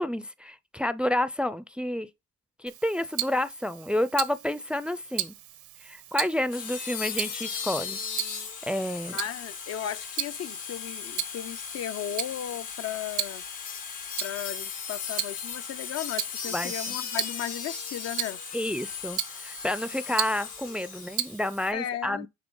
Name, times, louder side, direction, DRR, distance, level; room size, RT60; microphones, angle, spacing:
voice 1, 0.0-2.1 2.6-5.3 5.8-8.0 8.6-9.2 16.5-16.7 18.5-22.3, left 1 dB, 5° right, 0.4 m, -29 dB
Tick-tock, 2.7-21.7, right 13 dB, 85° right, 0.9 m, -37 dB
sound 1, 6.5-21.7, left 6 dB, 85° left, 1.6 m, -37 dB
voice 2, 9.1-13.4 14.2-18.4 21.7-22.3, left 11 dB, 55° left, 0.5 m, -35 dB
8.8 x 3.2 x 3.8 m
cardioid pair, 90°, 30 cm